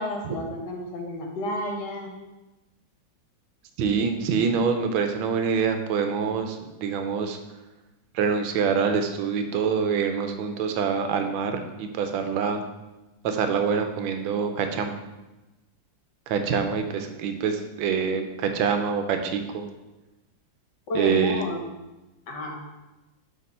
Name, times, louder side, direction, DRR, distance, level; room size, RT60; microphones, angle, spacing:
voice 1, 0.0-2.1 20.9-21.6 22.3-22.6, left 1 dB, 65° left, 1 dB, 1.4 m, -30 dB
voice 2, 3.8-7.4 8.1-12.6 13.2-14.9 16.3-19.7 20.9-21.4, right 6 dB, 85° right, 6 dB, 1.4 m, -25 dB
6.6 x 3.6 x 4.1 m, 1.0 s
omnidirectional pair, 2.1 m